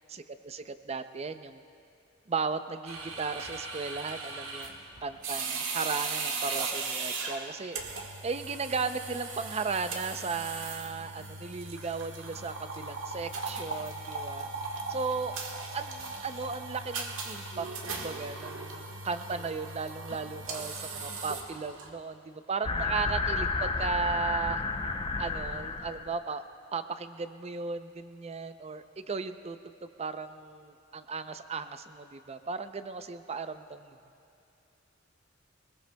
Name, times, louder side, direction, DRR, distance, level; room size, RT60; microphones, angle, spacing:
voice 1, 0.1-1.6 2.3-15.4 15.7-24.6 25.2-26.4 26.7-29.7 30.0-34.0, right 4 dB, 30° right, 10 dB, 0.5 m, -36 dB
sound 1, 2.9-21.9, right 4 dB, 85° right, 1.5 m, -38 dB
sound 2, 22.6-26.2, left 4 dB, 25° left, 0.5 m, -31 dB
22.0 x 20.5 x 2.3 m, 2.7 s
head